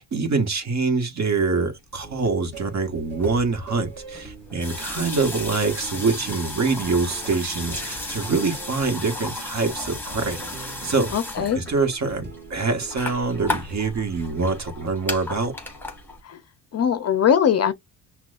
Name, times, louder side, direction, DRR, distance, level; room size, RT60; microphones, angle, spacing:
voice 1, 0.0-11.1 11.5-15.5, right 4 dB, 40° right, 1.5 m, -25 dB
sound 1, 2.0-13.8, right 3 dB, 25° right, 1.8 m, -43 dB
sound 2, 2.2-2.3 2.5-16.2, left 2 dB, 5° left, 1.6 m, -34 dB
voice 2, 11.1-11.6 16.2-16.4 16.7-17.7, left 8 dB, 35° left, 0.6 m, -21 dB
5.9 x 2.4 x 2.5 m
supercardioid pair, 85°, 44 cm